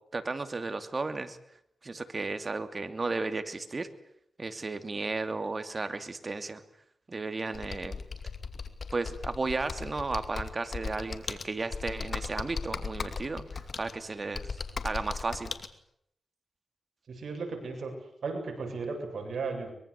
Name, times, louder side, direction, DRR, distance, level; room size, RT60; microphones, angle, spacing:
voice 1, 0.1-1.4 1.8-3.9 4.4-6.6 7.1-8.0 8.9-15.5, right 3 dB, 40° right, 10 dB, 2.7 m, -34 dB
Computer keyboard, 7.5-15.7, left 5 dB, 60° left, 2.5 m, -38 dB
voice 2, 17.1-17.9 18.2-19.7, right 4 dB, 70° right, 3 dB, 7.7 m, -35 dB
24.0 x 23.0 x 8.4 m, 0.73 s
cardioid pair, 70°, 0 cm